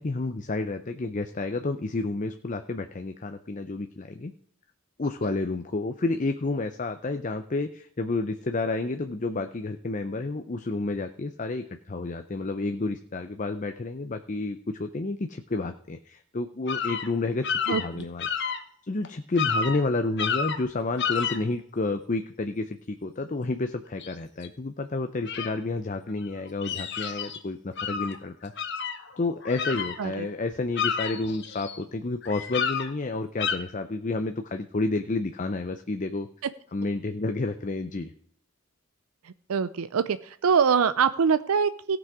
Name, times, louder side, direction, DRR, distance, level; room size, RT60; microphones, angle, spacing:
voice 1, 0.0-4.3 5.0-18.6 18.9-28.5 29.2-36.3 36.7-38.1, left 3 dB, 35° left, 7 dB, 0.6 m, -30 dB
sound 1, 16.7-17.1 17.4-18.6 19.0-19.1 19.4-19.8 20.2-20.7 21.0-21.4 24.0-24.1 24.4-24.5 25.3-25.5 26.2-27.4 27.8-28.2 28.6-30.3 30.5-31.8 32.2-32.9 33.4-33.5, left 6 dB, 50° left, 1.1 m, -30 dB
voice 2, 39.5-42.0, right 6 dB, 80° right, 13 dB, 0.5 m, -23 dB
17.5 x 6.1 x 4.8 m, 0.63 s
head